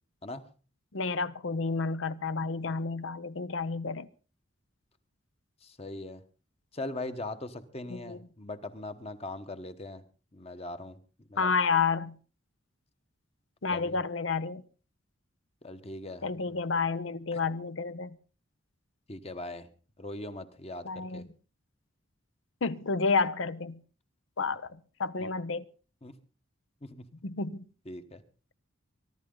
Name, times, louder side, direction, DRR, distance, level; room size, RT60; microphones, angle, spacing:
voice 1, 0.9-4.1 7.9-8.2 11.4-12.2 13.6-14.6 16.2-18.2 20.8-21.2 22.6-23.8 24.4-24.7 25.0-25.6 27.2-27.6, left 4 dB, 70° left, 0.8 m, -30 dB
voice 2, 5.6-6.2 6.7-10.0 10.3-11.5 13.7-14.0 15.6-16.3 17.3-17.4 19.1-19.7 20.0-21.3 25.2-25.3 26.0-26.2 26.8-27.1 27.8-28.2, left 2 dB, 30° left, 1.2 m, -40 dB
23.0 x 12.0 x 3.8 m
head